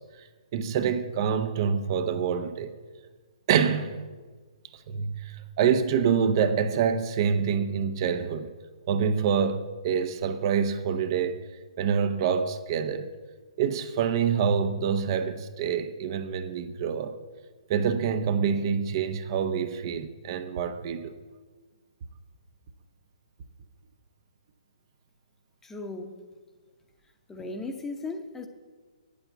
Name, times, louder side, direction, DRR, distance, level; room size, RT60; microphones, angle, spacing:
voice 1, 0.5-2.7 3.5-4.1 4.9-8.5 8.9-11.4 11.8-13.1 13.6-17.1 17.7-21.1, right 7 dB, 40° right, 0.8 m, -26 dB
voice 2, 25.6-26.2 27.3-28.5, left 3 dB, 10° left, 1.0 m, -36 dB
8.8 x 8.5 x 8.2 m
figure-of-eight pair, 130°, 4 cm